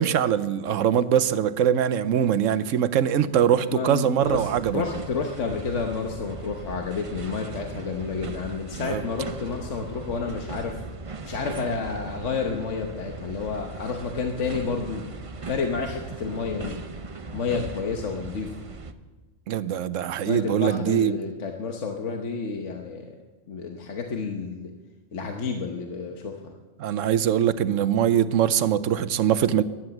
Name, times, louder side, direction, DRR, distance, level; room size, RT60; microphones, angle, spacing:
voice 1, 0.0-4.8 8.8-9.0 19.5-21.1 26.8-29.6, right 9 dB, 85° right, 1.0 m, -22 dB
voice 2, 3.7-10.8 11.2-15.1 15.5-16.8 17.3-18.6 20.2-23.1 23.5-24.7 25.1-26.5, left 5 dB, 70° left, 1.4 m, -30 dB
sound 1, 4.2-18.9, right 3 dB, 35° right, 0.6 m, -38 dB
15.5 x 11.5 x 7.1 m
omnidirectional pair, 1.3 m